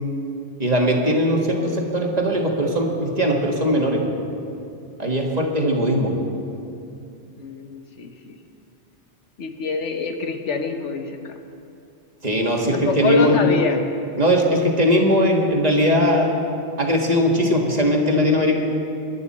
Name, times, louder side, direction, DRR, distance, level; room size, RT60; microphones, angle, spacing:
voice 1, 0.6-4.0 5.0-6.2 12.2-13.4 14.2-16.3 16.8-18.6, equal, 35° right, 0 dB, 1.7 m, -19 dB
voice 2, 7.4-8.4 9.4-11.1 12.7-13.8, left 4 dB, 85° left, 5 dB, 1.4 m, -25 dB
21.5 x 11.5 x 4.2 m, 2.6 s
omnidirectional pair, 1.2 m